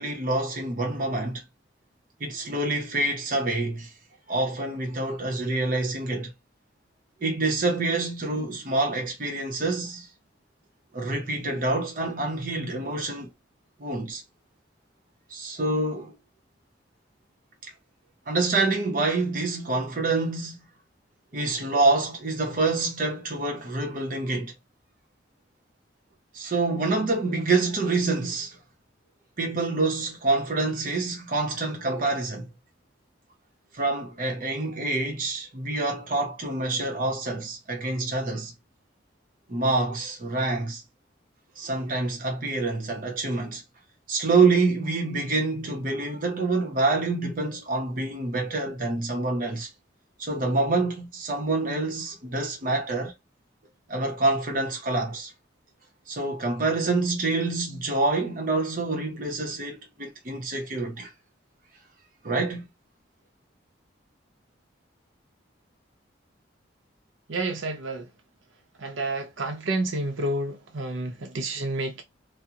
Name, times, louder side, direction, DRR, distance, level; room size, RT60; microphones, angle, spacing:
voice 1, 0.0-1.4 2.2-3.9 4.3-6.3 7.2-10.1 10.9-13.3 13.8-14.2 15.3-16.2 18.3-20.7 21.3-24.5 26.3-28.6 29.4-32.5 33.7-38.5 39.5-40.8 41.6-43.6 44.1-49.7 50.2-53.1 53.9-55.3 56.1-61.1 62.2-62.7, right 3 dB, 45° right, 0.7 m, -26 dB
voice 2, 67.3-68.0 68.8-72.0, right 2 dB, 85° right, 0.7 m, -29 dB
2.4 x 2.0 x 2.7 m
head